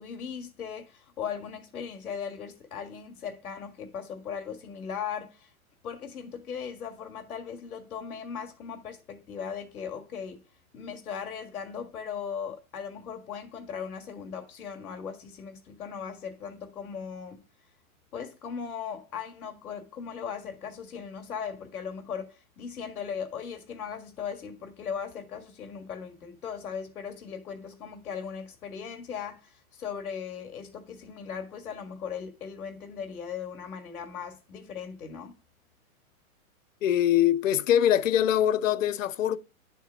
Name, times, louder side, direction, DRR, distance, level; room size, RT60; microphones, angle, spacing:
voice 1, 0.0-5.5 5.8-10.4 10.7-17.4 18.1-35.4, left 7 dB, ahead, 0.4 m, -38 dB
voice 2, 36.8-39.4, left 11 dB, 65° left, 0.7 m, -23 dB
11.0 x 3.6 x 5.0 m
hypercardioid pair, 170°, 43 cm